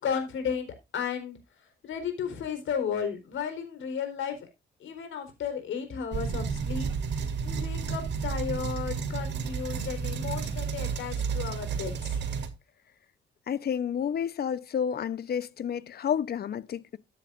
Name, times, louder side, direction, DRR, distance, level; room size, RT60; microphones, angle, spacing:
voice 1, 0.0-1.4 1.8-4.5 4.8-6.9 7.4-12.2, left 7 dB, 75° left, 4.3 m, -34 dB
sound 1, 6.1-12.5, right 6 dB, 65° right, 2.4 m, -31 dB
voice 2, 13.5-17.0, left 8 dB, 55° left, 0.9 m, -30 dB
14.0 x 9.9 x 2.6 m
cardioid pair, 90°, 20 cm